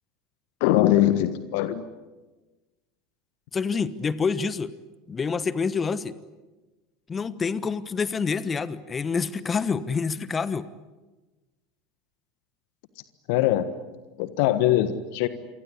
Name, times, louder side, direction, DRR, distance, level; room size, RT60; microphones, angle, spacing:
voice 1, 0.6-1.8 13.3-13.7 14.2-15.3, left 13 dB, 60° left, 13 dB, 1.4 m, -22 dB
voice 2, 3.5-4.7 5.1-6.2 7.1-10.7, left 5 dB, 25° left, 16 dB, 1.2 m, -27 dB
28.5 x 24.0 x 8.5 m, 1.2 s
figure-of-eight pair, 75°, 0 cm